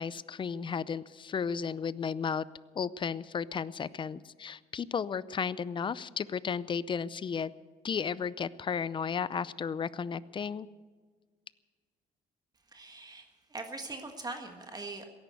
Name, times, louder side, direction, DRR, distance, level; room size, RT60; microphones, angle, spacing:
voice 1, 0.0-2.5 2.7-7.5 7.8-10.7, left 6 dB, 30° left, 18 dB, 0.5 m, -34 dB
voice 2, 12.7-15.1, right 3 dB, 25° right, 5 dB, 1.6 m, -42 dB
16.5 x 11.0 x 8.1 m, 1.5 s
cardioid pair, 110°, 17 cm